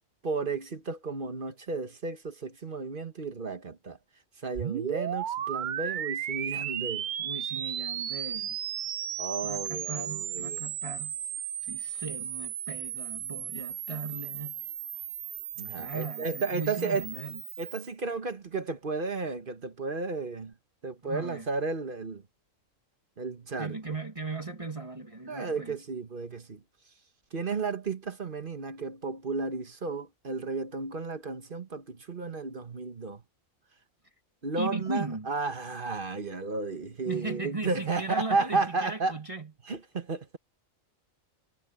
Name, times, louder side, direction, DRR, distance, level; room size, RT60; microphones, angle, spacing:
voice 1, 0.2-4.0 4.4-7.1 9.2-10.6 15.6-17.0 17.6-20.5 20.8-22.2 23.2-23.7 25.3-26.6 27.3-33.2 34.4-39.1 39.7-40.4, right 4 dB, 40° right, 1.5 m, -33 dB
sound 1, 4.5-17.9, right 10 dB, 90° right, 0.4 m, -35 dB
voice 2, 7.2-8.6 9.4-11.1 11.6-14.6 15.8-17.4 21.0-21.5 23.6-25.8 34.6-35.3 37.0-39.5, right 3 dB, 25° right, 1.8 m, -37 dB
omnidirectional pair, 1.4 m